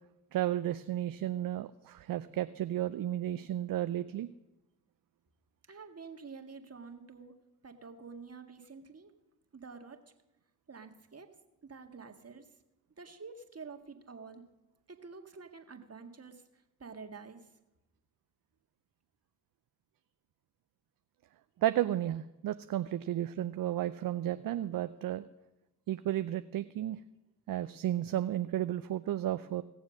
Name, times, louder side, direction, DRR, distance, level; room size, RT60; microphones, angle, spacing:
voice 1, 0.3-4.3 21.6-25.2 25.9-27.0 27.5-29.6, right 12 dB, 55° right, 12 dB, 0.6 m, -33 dB
voice 2, 5.7-7.3 7.6-9.1 9.5-10.0 10.7-11.3 11.6-12.5 13.0-14.4 14.9-16.4 16.8-17.4, right 5 dB, 35° right, 5 dB, 1.8 m, -48 dB
17.5 x 7.1 x 6.4 m, 0.97 s
hypercardioid pair, 40°, 40 cm